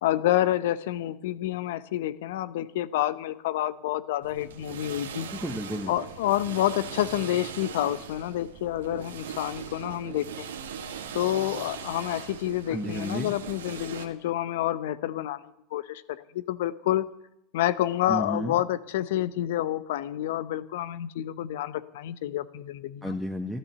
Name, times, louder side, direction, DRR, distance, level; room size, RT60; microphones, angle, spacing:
voice 1, 0.0-5.3 5.9-10.5 11.1-15.4 15.7-17.1 17.5-23.2, left 13 dB, 65° left, 14 dB, 0.8 m, -28 dB
sound 1, 4.2-14.1, right 7 dB, 75° right, 1.7 m, -40 dB
voice 2, 5.3-5.9 12.7-13.3 18.1-18.6 23.0-23.6, equal, ahead, 2 dB, 1.6 m, -32 dB
14.5 x 12.5 x 6.9 m, 0.79 s
hypercardioid pair, 80°, 0 cm